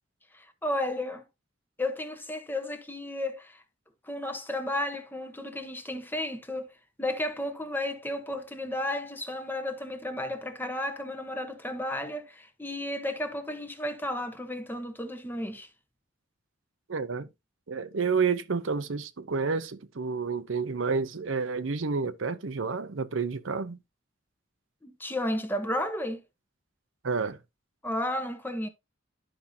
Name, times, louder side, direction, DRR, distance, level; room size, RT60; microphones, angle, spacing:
voice 1, 0.3-1.2 1.8-3.6 4.0-6.7 7.0-15.7 24.8-26.2 27.8-28.7, left 1 dB, 10° left, 1.0 m, -33 dB
voice 2, 16.9-17.3 17.7-23.8 27.0-27.4, right 5 dB, 80° right, 0.7 m, -30 dB
11.5 x 5.6 x 2.7 m
head